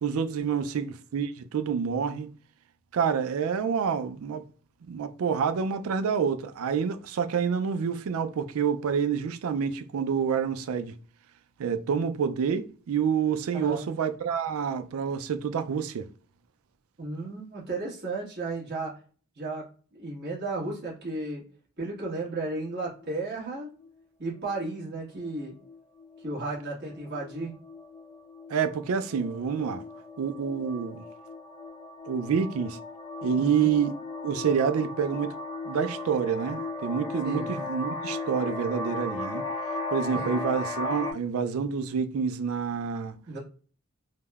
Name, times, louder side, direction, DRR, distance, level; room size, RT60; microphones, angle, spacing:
voice 1, 0.0-2.3 2.9-4.4 4.9-10.9 11.6-16.1 28.5-29.8 30.2-31.0 32.1-32.8 33.2-33.9 34.2-35.3 35.7-39.4 39.9-43.2, right 7 dB, 80° right, 0.4 m, -28 dB
voice 2, 13.5-13.9 17.0-18.9 19.4-19.6 19.9-21.4 21.8-23.7 24.2-25.6 26.2-27.5 33.4-33.7 37.2-37.5 40.1-40.3 43.3-43.4, right 2 dB, 50° right, 1.3 m, -34 dB
sound 1, 22.8-23.2 23.8-24.0 24.2-24.5 24.8-41.1, left 2 dB, 20° left, 0.6 m, -37 dB
3.3 x 2.1 x 2.3 m
head